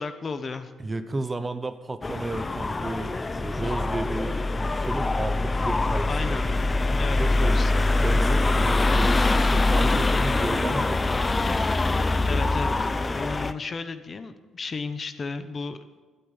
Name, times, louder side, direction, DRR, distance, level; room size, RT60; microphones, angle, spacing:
voice 1, 0.0-0.7 6.0-6.5 6.9-7.7 12.3-12.9 13.1-15.8, left 4 dB, 40° left, 10 dB, 1.1 m, -33 dB
voice 2, 0.8-6.4 7.2-7.7 8.0-11.5, right 2 dB, 25° right, 11 dB, 0.9 m, -33 dB
sound 1, 2.0-13.5, left 2 dB, 25° left, 0.6 m, -23 dB
12.5 x 8.5 x 9.9 m, 1.4 s
cardioid pair, 90°, 0 cm